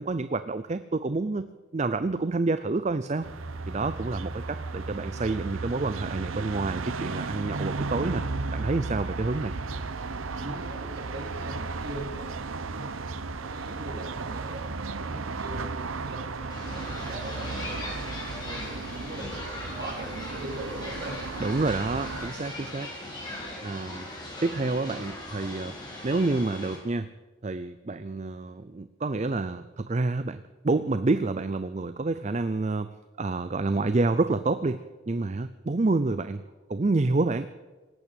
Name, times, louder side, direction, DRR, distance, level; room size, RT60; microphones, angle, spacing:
voice 1, 0.0-1.5 1.7-3.3 3.7-8.2 8.5-9.5 21.4-22.9 23.6-24.1 24.4-25.7 26.0-27.1 27.4-36.4 36.7-37.5, right 3 dB, 35° right, 12 dB, 0.5 m, -28 dB
sound 1, 3.2-22.3, right 3 dB, 85° right, 0.8 m, -34 dB
voice 2, 10.3-13.0 13.4-14.7 15.0-18.1 18.5-21.2, right 1 dB, 50° right, 1 dB, 3.5 m, -41 dB
sound 2, 16.5-26.8, left 1 dB, 20° left, 4.0 m, -39 dB
19.0 x 8.7 x 8.6 m, 1.3 s
head